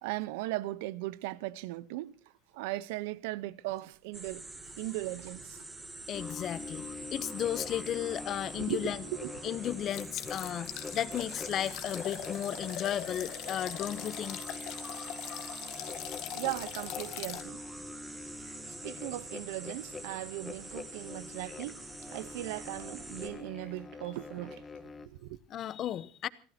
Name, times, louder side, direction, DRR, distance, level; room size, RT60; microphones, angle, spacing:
voice 1, 0.0-2.2 2.5-4.5 4.8-5.6 8.6-9.6 16.3-17.6 18.7-21.8 22.1-24.7 25.0-25.4, right 18 dB, 75° right, 1.0 m, -38 dB
sound 1, 4.1-23.3, right 2 dB, 10° right, 2.7 m, -46 dB
voice 2, 6.1-9.0 9.4-14.4 14.8-15.5 25.5-26.3, left 11 dB, 30° left, 1.0 m, -35 dB
sound 2, 6.1-25.1, left 4 dB, 15° left, 1.2 m, -46 dB
sound 3, 9.9-17.4, left 14 dB, 50° left, 1.8 m, -42 dB
27.0 x 17.5 x 2.9 m
cardioid pair, 160°, 0 cm